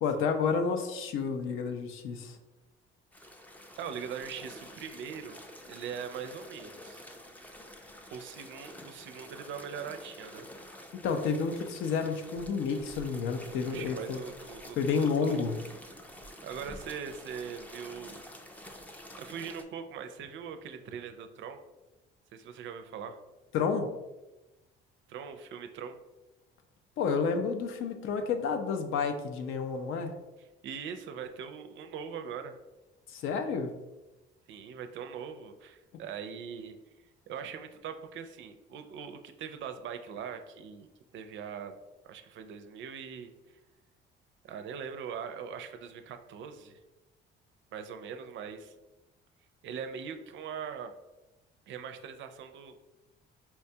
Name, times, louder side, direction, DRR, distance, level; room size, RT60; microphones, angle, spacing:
voice 1, 0.0-2.4 11.0-14.2 14.8-15.6 23.5-23.9 27.0-30.2 33.1-33.7, left 5 dB, 75° left, 6 dB, 0.5 m, -30 dB
sound 1, 3.1-19.6, equal, 10° left, 0.3 m, -49 dB
voice 2, 3.8-7.1 8.1-10.5 13.7-15.6 16.4-18.2 19.1-21.6 22.3-23.2 25.1-26.0 30.6-32.5 34.5-36.7 37.3-40.9 41.1-41.7 42.0-43.3 44.4-46.8 47.7-48.7 49.6-50.9 51.7-52.8, right 7 dB, 65° right, 7 dB, 0.4 m, -41 dB
4.4 x 2.2 x 2.7 m, 1.0 s
cardioid pair, 120°, 21 cm